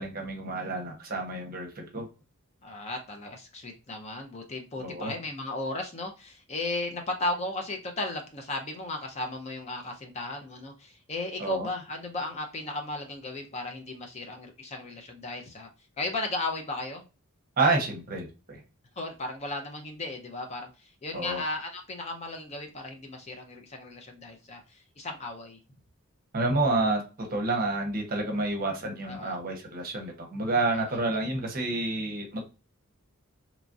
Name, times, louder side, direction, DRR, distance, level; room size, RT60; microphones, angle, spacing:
voice 1, 0.0-2.1 4.8-5.1 11.4-11.7 17.6-18.6 21.1-21.4 26.3-32.4, right 2 dB, 40° right, 2 dB, 0.8 m, -29 dB
voice 2, 2.6-15.7 16.0-17.0 19.0-25.6 29.1-29.4 30.7-31.0, left 2 dB, 30° left, 3 dB, 0.4 m, -35 dB
3.0 x 2.4 x 2.5 m, 0.31 s
head